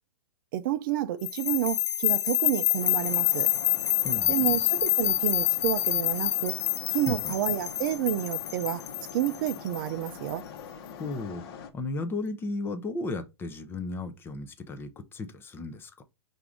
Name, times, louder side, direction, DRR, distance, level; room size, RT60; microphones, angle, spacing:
voice 1, 0.5-3.5 4.3-6.6 6.9-8.8 9.1-10.4, right 12 dB, 50° right, 0.4 m, -29 dB
sound 1, 1.2-10.3, left 14 dB, 75° left, 0.5 m, -27 dB
sound 2, 2.8-11.7, left 7 dB, 55° left, 1.0 m, -44 dB
voice 2, 4.0-4.6 7.1-7.3 11.0-16.0, left 3 dB, 15° left, 0.5 m, -35 dB
4.7 x 2.6 x 3.4 m
hypercardioid pair, 135°, 15 cm